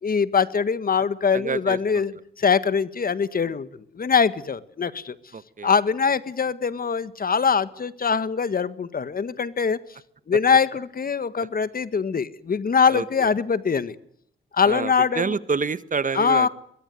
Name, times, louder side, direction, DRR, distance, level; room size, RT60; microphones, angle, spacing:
voice 1, 0.0-2.1 2.4-3.7 3.9-5.1 5.6-9.8 10.3-13.9 14.5-15.3 16.1-16.5, left 6 dB, 50° left, 14 dB, 1.6 m, -22 dB
voice 2, 1.3-2.0 5.3-5.7 12.9-13.3 14.6-16.5, right 5 dB, 45° right, 15 dB, 1.5 m, -28 dB
22.5 x 22.0 x 9.4 m, 0.68 s
supercardioid pair, 50°, 19 cm